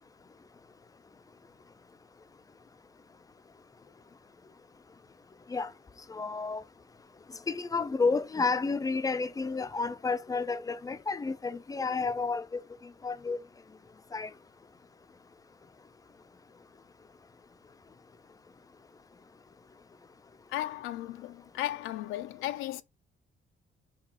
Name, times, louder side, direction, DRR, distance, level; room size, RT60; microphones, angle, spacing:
voice 1, 6.1-6.6 7.5-13.4 14.1-14.3, left 4 dB, 20° left, 0.4 m, -31 dB
voice 2, 20.5-22.8, left 14 dB, 90° left, 0.4 m, -35 dB
5.8 x 2.4 x 2.9 m
cardioid pair, 90°, 20 cm